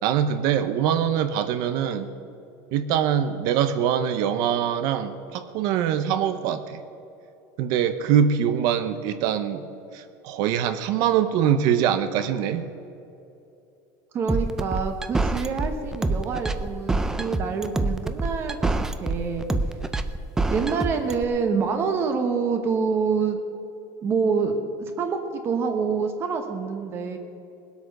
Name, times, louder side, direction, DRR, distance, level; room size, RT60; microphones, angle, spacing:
voice 1, 0.0-2.1 2.7-6.8 7.6-9.7 9.9-12.7, right 9 dB, 50° right, 10 dB, 0.7 m, -23 dB
voice 2, 14.1-19.5 20.5-23.4 24.0-24.6 25.0-25.2 25.4-27.2, right 5 dB, 30° right, 6 dB, 1.0 m, -26 dB
sound 1, 14.3-21.2, right 2 dB, 5° right, 0.4 m, -26 dB
19.5 x 8.2 x 6.5 m, 2.7 s
cardioid pair, 175°, 9 cm